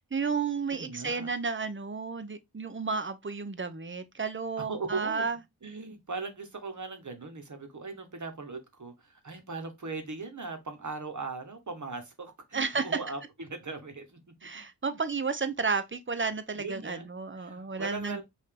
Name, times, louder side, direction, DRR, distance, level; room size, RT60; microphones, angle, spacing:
voice 1, 0.1-5.4 12.5-13.0 14.4-18.2, right 4 dB, 30° right, 0.6 m, -32 dB
voice 2, 0.7-1.3 4.6-5.3 5.6-14.2 16.5-17.1 17.3-18.2, right 3 dB, 45° right, 1.2 m, -39 dB
5.4 x 2.7 x 3.4 m
wide cardioid pair, 80°, 40 cm